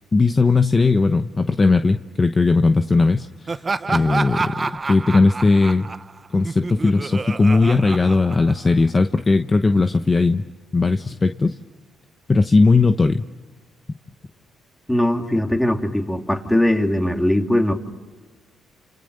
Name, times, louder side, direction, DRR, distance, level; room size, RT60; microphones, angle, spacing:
voice 1, 0.1-3.5 3.9-5.9 6.3-10.4 10.7-11.6 12.3-13.3, left 3 dB, 25° left, 8 dB, 1.0 m, -18 dB
Laughter, 3.5-8.9, right 4 dB, 30° right, 0.9 m, -28 dB
voice 2, 14.9-17.7, left 1 dB, 5° left, 4 dB, 3.0 m, -20 dB
30.0 x 28.5 x 6.7 m, 1.3 s
cardioid pair, 90°, 0 cm